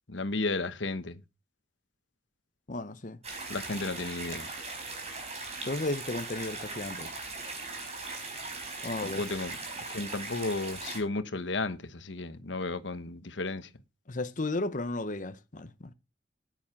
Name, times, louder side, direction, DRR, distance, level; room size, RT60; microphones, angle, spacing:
voice 1, 0.1-1.2 3.5-4.5 9.0-9.5 9.9-13.7, left 3 dB, 80° left, 1.2 m, -33 dB
voice 2, 2.7-3.2 5.6-7.1 8.8-9.2 14.1-15.9, left 2 dB, 45° left, 0.9 m, -34 dB
sound 1, 3.2-11.0, right 3 dB, 35° right, 4.3 m, -39 dB
9.9 x 9.5 x 5.8 m
head